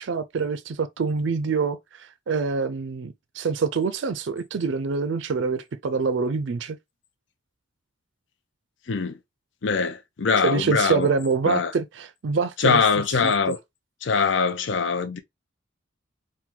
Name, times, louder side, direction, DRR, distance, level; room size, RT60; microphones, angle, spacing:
voice 1, 0.0-6.8 10.4-12.8 13.2-13.5, right 4 dB, 65° right, 0.4 m, -26 dB
voice 2, 9.6-11.1 11.5-11.7 12.6-13.6 14.0-15.2, left 5 dB, 65° left, 0.5 m, -22 dB
4.4 x 2.2 x 3.6 m
head